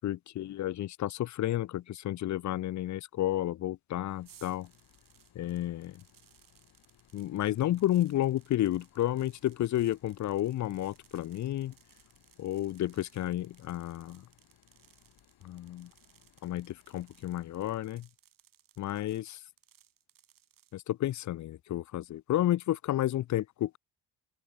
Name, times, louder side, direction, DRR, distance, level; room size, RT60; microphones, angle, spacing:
voice 1, 0.0-4.7 5.3-6.0 7.1-11.7 12.4-14.2 15.4-15.9 16.4-18.1 18.8-19.4 20.7-23.8, left 13 dB, 45° left, 0.6 m, -31 dB
sound 1, 4.1-17.9, left 11 dB, 60° left, 7.7 m, -65 dB
sound 2, 4.2-20.7, right 11 dB, 50° right, 2.2 m, -63 dB
open air
cardioid pair, 160°, 41 cm